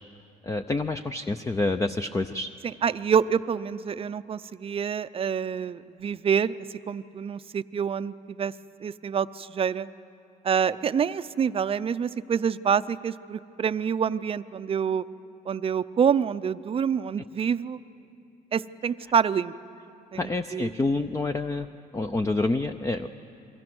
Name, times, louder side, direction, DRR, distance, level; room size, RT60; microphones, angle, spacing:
voice 1, 0.4-2.5 20.1-21.7 21.9-23.1, left 2 dB, 15° left, 8 dB, 0.6 m, -27 dB
voice 2, 2.8-6.6 6.9-8.5 8.8-9.9 10.4-15.0 15.5-17.8 18.5-19.5 20.1-20.7, right 7 dB, 35° right, 13 dB, 0.6 m, -27 dB
29.0 x 23.5 x 6.2 m, 2.7 s
cardioid pair, 110°, 17 cm